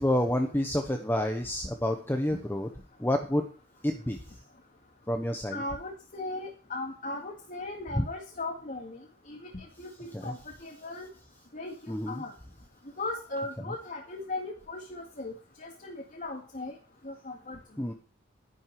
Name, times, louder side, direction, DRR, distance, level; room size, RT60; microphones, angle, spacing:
voice 1, 0.0-2.7 3.0-3.4 3.8-4.4 5.1-5.6 8.0-8.1 10.1-10.3 11.9-12.2 17.8-17.9, left 1 dB, 10° left, 4 dB, 1.1 m, -29 dB
voice 2, 5.5-11.1 11.5-12.3 13.0-15.3 15.6-16.8 17.0-17.6, left 2 dB, 40° left, 1 dB, 2.1 m, -38 dB
11.0 x 11.0 x 4.8 m, 0.38 s
head